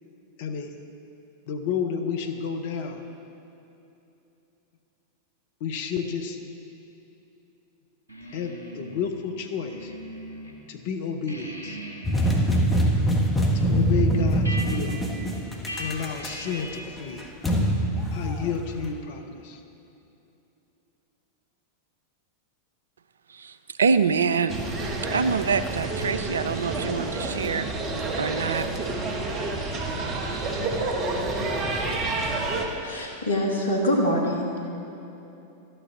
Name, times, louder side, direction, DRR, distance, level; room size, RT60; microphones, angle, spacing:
voice 1, 0.4-0.7 1.4-3.0 5.6-6.4 8.3-9.9 10.7-11.8 13.5-15.0 15.8-17.3 18.1-19.6, left 6 dB, 50° left, 0.8 m, -31 dB
sound 1, 8.1-10.6 10.9-17.0, equal, 85° right, 1.2 m, -41 dB
sound 2, 12.0-18.9, right 1 dB, 10° left, 1.2 m, -24 dB
voice 2, 23.8-24.5 25.1-27.6 28.2-28.7, right 5 dB, 70° right, 0.3 m, -25 dB
sound 3, 24.5-32.7, right 2 dB, 30° right, 1.1 m, -29 dB
voice 3, 32.8-34.7, equal, 75° left, 1.5 m, -25 dB
12.0 x 9.0 x 3.8 m
figure-of-eight pair, 90°, 0 cm